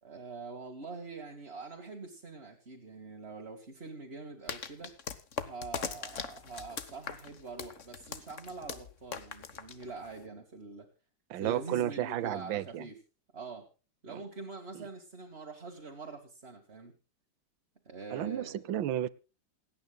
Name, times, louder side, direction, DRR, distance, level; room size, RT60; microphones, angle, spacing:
voice 1, 0.0-4.9 5.4-10.9 11.4-13.0 13.3-13.7 14.0-16.9 17.9-18.7, right 3 dB, 35° right, 2.2 m, -44 dB
sound 1, 4.5-10.2, left 7 dB, 45° left, 1.3 m, -40 dB
voice 2, 11.3-12.8 14.1-14.2 14.7-14.9 18.1-19.1, right 12 dB, 85° right, 1.5 m, -33 dB
28.0 x 9.5 x 2.3 m
omnidirectional pair, 2.0 m